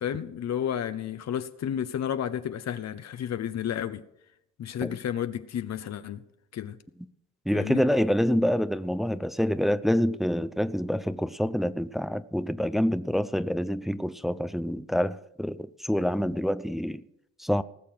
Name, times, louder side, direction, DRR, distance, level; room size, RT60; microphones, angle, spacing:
voice 1, 0.0-4.0 4.6-6.2 6.5-6.8 7.5-7.8, left 9 dB, 60° left, 1.0 m, -31 dB
voice 2, 7.5-17.0 17.4-17.6, equal, ahead, 0.6 m, -27 dB
19.0 x 6.7 x 7.7 m
cardioid pair, 90°, 30 cm